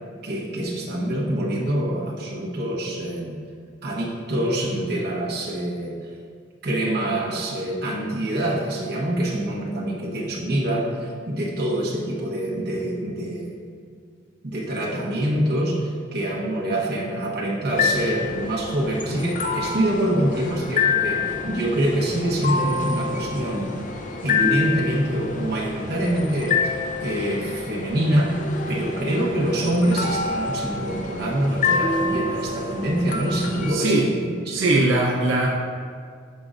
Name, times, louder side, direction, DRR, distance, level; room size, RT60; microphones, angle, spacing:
voice 1, 0.2-3.4 3.8-6.0 6.6-13.8 14.4-23.7 24.2-26.6 27.0-28.4 28.7-34.7, right 1 dB, 55° right, -3 dB, 1.1 m, -25 dB
sound 1, 17.7-33.7, left 4 dB, 40° left, 0.5 m, -27 dB
voice 2, 33.7-34.1 34.5-35.5, right 2 dB, 85° right, -2 dB, 0.6 m, -20 dB
10.5 x 5.2 x 2.5 m, 2.1 s
head